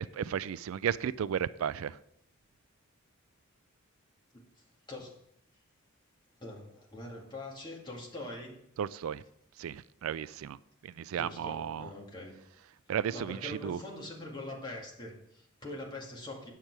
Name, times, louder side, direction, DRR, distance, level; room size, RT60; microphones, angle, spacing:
voice 1, 0.0-2.0 8.8-9.2 9.6-10.6 10.8-11.9 12.9-13.8, right 8 dB, 90° right, 18 dB, 0.3 m, -34 dB
voice 2, 6.4-8.6 11.2-12.4 13.1-16.5, left 1 dB, 20° left, -2 dB, 2.0 m, -43 dB
8.9 x 6.6 x 4.6 m, 0.74 s
head